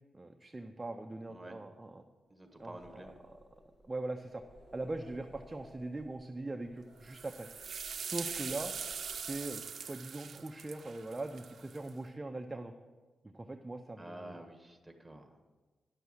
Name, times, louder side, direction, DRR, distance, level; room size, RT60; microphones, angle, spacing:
voice 1, 0.1-2.0 2.6-3.4 3.8-4.4 4.7-7.5 8.0-8.7 9.2-12.7 13.2-14.4, right 2 dB, 20° right, 4 dB, 0.6 m, -41 dB
voice 2, 2.3-3.2 14.0-15.5, right 1 dB, 5° right, 4 dB, 1.5 m, -49 dB
sound 1, 2.4-10.0, equal, 60° left, 1.7 m, -58 dB
sound 2, 7.1-11.9, right 6 dB, 60° right, 0.6 m, -42 dB
10.5 x 6.9 x 6.3 m, 1.3 s
cardioid pair, 100°, 0 cm